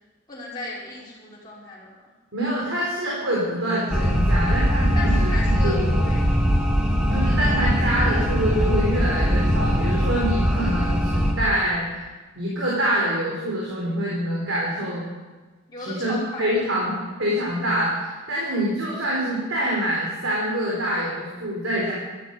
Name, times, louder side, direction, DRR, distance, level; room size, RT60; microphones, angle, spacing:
voice 1, 0.3-2.1 4.9-6.4 15.7-16.5 17.0-17.2, left 2 dB, 20° left, -9 dB, 5.6 m, -35 dB
voice 2, 2.3-6.0 7.1-12.0 12.4-15.0 15.8-21.9, right 1 dB, 75° right, -5 dB, 4.2 m, -25 dB
sound 1, 3.9-11.3, equal, 5° right, 2.7 m, -21 dB
16.0 x 13.5 x 5.4 m, 1.3 s
head